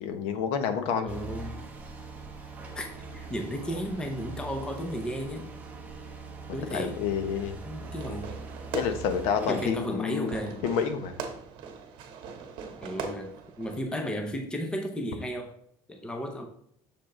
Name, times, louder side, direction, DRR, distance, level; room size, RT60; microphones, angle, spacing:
voice 1, 0.0-1.2 6.7-7.5 8.7-11.1, left 7 dB, 60° left, 8 dB, 0.9 m, -29 dB
voice 2, 1.0-1.7 2.7-2.9 3.1-5.5 6.5-7.0 7.6-8.3 9.5-10.6 12.8-15.6 15.9-16.5, equal, 5° left, 4 dB, 0.7 m, -34 dB
sound 1, 1.1-9.7, right 3 dB, 10° right, 1.0 m, -42 dB
Fireworks, 7.8-13.8, right 6 dB, 45° right, 1.2 m, -41 dB
6.9 x 5.0 x 3.8 m, 0.68 s
cardioid pair, 175°, 11 cm